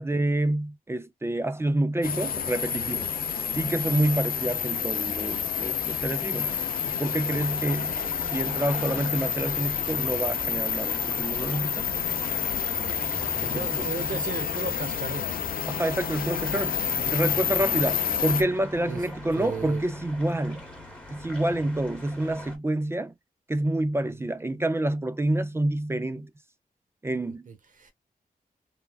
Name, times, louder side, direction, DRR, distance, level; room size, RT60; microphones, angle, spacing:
voice 1, 0.0-3.1 3.6-6.5 7.0-7.9 8.3-11.9 13.4-13.9 14.1-14.2 15.7-16.8 17.1-20.6 21.1-23.1 23.5-26.3 27.0-27.5, right 1 dB, 15° right, 0.3 m, -28 dB
sound 1, 2.0-18.4, left 8 dB, 70° left, 0.5 m, -29 dB
sound 2, 6.4-22.6, left 1 dB, 5° left, 1.0 m, -43 dB
voice 2, 13.4-15.2 17.0-17.1 18.9-19.0 19.3-19.8 27.5-27.9, right 5 dB, 60° right, 1.0 m, -35 dB
3.3 x 2.3 x 2.3 m
wide cardioid pair, 140°, 15 cm